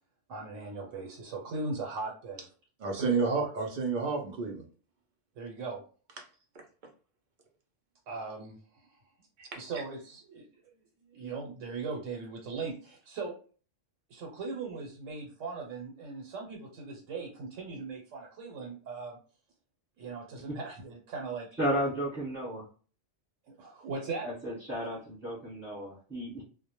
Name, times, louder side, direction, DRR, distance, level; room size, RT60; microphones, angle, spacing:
voice 1, 0.3-2.4 3.0-3.1 3.3-3.5 5.4-5.8 8.1-8.6 9.5-10.7 11.0-13.3 14.1-19.2 20.0-21.5 23.5-24.3, right 4 dB, 90° right, -1 dB, 1.0 m, -39 dB
voice 2, 2.8-4.6 9.4-9.6, right 4 dB, 55° right, 2 dB, 0.5 m, -30 dB
voice 3, 21.6-22.7 24.2-26.4, equal, 10° right, -8 dB, 0.9 m, -33 dB
2.1 x 2.1 x 2.8 m, 0.39 s
omnidirectional pair, 1.3 m